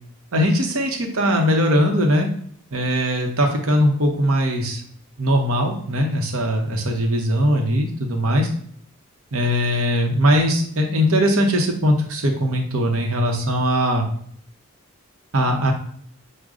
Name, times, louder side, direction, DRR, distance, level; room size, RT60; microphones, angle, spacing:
voice 1, 0.3-2.3 2.7-4.8 5.2-8.5 9.3-14.1 15.3-15.7, equal, 65° right, 2 dB, 0.8 m, -20 dB
6.3 x 2.1 x 3.6 m, 0.63 s
head